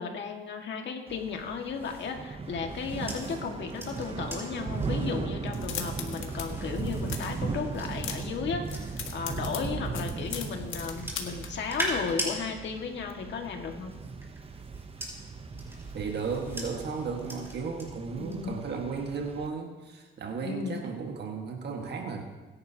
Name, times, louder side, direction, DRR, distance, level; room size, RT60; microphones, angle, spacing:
voice 1, 0.0-13.9 18.2-18.6 20.4-20.8, left 5 dB, 65° left, 2 dB, 1.8 m, -35 dB
Thunder / Rain, 1.1-19.5, right 4 dB, 30° right, 0.7 m, -38 dB
sound 1, 1.7-9.3 9.9-12.3 13.6-17.8 18.2-18.6, equal, 10° right, 4.7 m, -41 dB
sound 2, 5.5-6.5 6.7-7.4 7.7-8.4 8.6-11.5, left 8 dB, 80° left, 1.8 m, -38 dB
voice 2, 15.9-22.2, right 5 dB, 60° right, 3 dB, 1.6 m, -35 dB
21.5 x 11.0 x 2.8 m, 1.2 s
cardioid pair, 90°, 20 cm